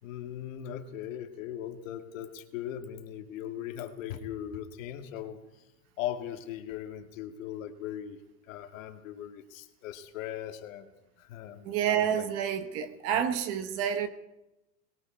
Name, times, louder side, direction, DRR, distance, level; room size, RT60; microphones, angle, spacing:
voice 1, 0.0-5.4 6.0-8.2 8.5-10.9 11.2-12.2 13.1-13.3, left 10 dB, 55° left, 2.5 m, -39 dB
voice 2, 11.6-14.1, right 9 dB, 30° right, 1.3 m, -29 dB
29.0 x 21.5 x 4.7 m
supercardioid pair, 175°, 48 cm